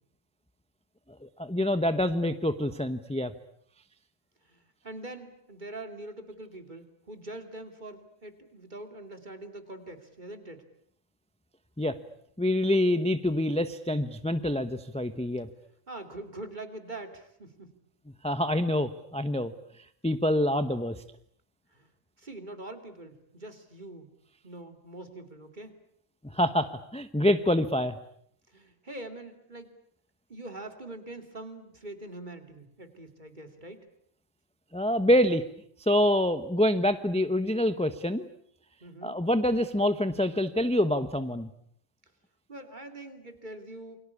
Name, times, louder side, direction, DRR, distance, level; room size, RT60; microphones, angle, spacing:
voice 1, 1.2-3.3 11.8-12.0 12.4-15.5 18.2-19.5 20.0-21.0 26.3-28.0 34.7-35.4 35.8-38.3 39.0-41.5, left 1 dB, 5° left, 11 dB, 0.9 m, -26 dB
voice 2, 4.4-10.7 15.9-17.8 21.7-21.9 22.2-24.1 24.4-25.8 28.5-29.8 30.3-33.9 38.8-39.2 42.5-44.0, right 2 dB, 40° right, 7 dB, 3.0 m, -43 dB
29.0 x 23.5 x 8.5 m, 0.66 s
omnidirectional pair, 1.3 m